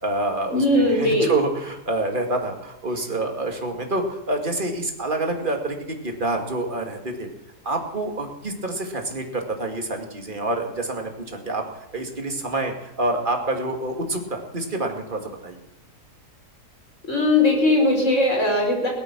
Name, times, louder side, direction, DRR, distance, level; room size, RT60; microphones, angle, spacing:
voice 1, 0.0-7.3 7.6-11.1 11.4-11.6 11.9-15.6, right 2 dB, 30° right, 3 dB, 2.5 m, -27 dB
voice 2, 0.5-1.3 17.1-18.9, left 2 dB, 45° left, 0 dB, 5.6 m, -19 dB
18.0 x 12.5 x 6.1 m, 0.96 s
omnidirectional pair, 1.7 m